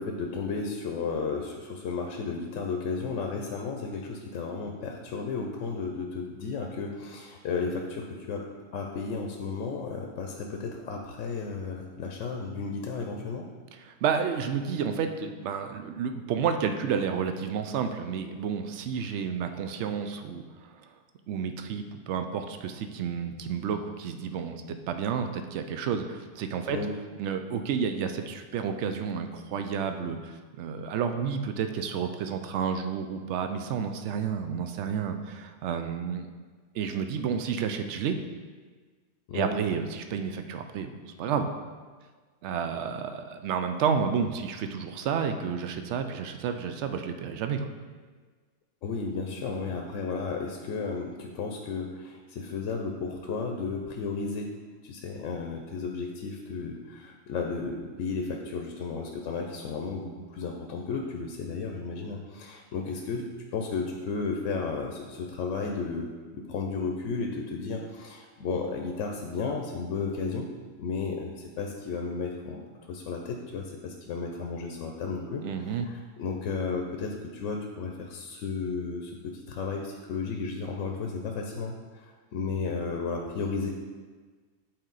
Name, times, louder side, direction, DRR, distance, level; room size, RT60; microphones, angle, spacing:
voice 1, 0.0-8.4 8.7-13.5 26.7-26.9 39.3-39.6 48.8-54.5 54.8-66.1 66.3-70.5 70.8-72.6 72.9-83.7, left 4 dB, 80° left, 2 dB, 1.0 m, -33 dB
voice 2, 13.7-20.4 21.3-26.8 27.2-36.3 36.7-38.2 39.3-41.5 42.4-47.7 75.4-75.9, right 7 dB, 70° right, 7 dB, 0.8 m, -31 dB
7.8 x 4.4 x 3.9 m, 1.4 s
omnidirectional pair, 1.3 m